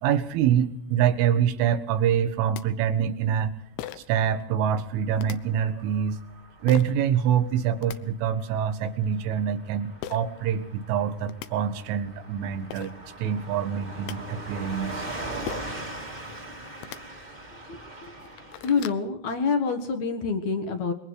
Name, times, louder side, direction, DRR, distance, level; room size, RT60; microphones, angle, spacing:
voice 1, 0.0-3.5 4.0-6.2 6.6-12.9 13.2-15.1, right 9 dB, 75° right, 8 dB, 3.9 m, -25 dB
sound 1, 2.2-2.3 2.5-2.6 3.8-4.2 5.2-5.4 6.7-6.9 7.6-8.0 10.0-10.2 11.0-11.1 11.3-11.5 12.4-12.5 12.7-12.9 13.7-14.2 15.5-15.8 16.7-17.0 17.6-17.7 18.1-19.0, left 12 dB, 75° left, 3.2 m, -38 dB
Car passing by / Truck, 4.5-18.9, right 1 dB, 20° right, 1.6 m, -41 dB
voice 2, 18.6-20.9, left 5 dB, 60° left, 7 dB, 2.0 m, -26 dB
26.0 x 22.5 x 4.8 m, 0.70 s
omnidirectional pair, 5.8 m